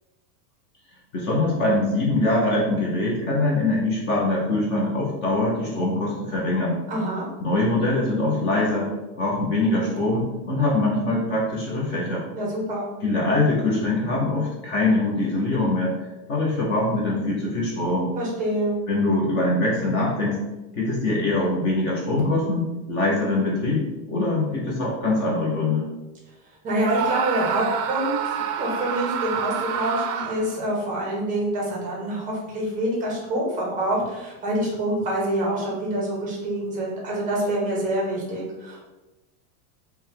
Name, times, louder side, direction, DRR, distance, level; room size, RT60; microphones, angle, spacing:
voice 1, 1.1-6.8 7.4-8.9 9.1-12.2 13.0-15.9 16.3-18.1 18.9-20.4 20.8-23.8 24.1-25.8, left 2 dB, 25° left, -4 dB, 0.5 m, -23 dB
voice 2, 6.9-7.3 12.3-12.9 18.2-18.8 26.6-38.8, right 1 dB, 20° right, -2 dB, 0.6 m, -26 dB
Screaming, 26.8-30.6, right 7 dB, 90° right, 0.6 m, -28 dB
4.4 x 2.2 x 3.6 m, 1.1 s
supercardioid pair, 170°, 46 cm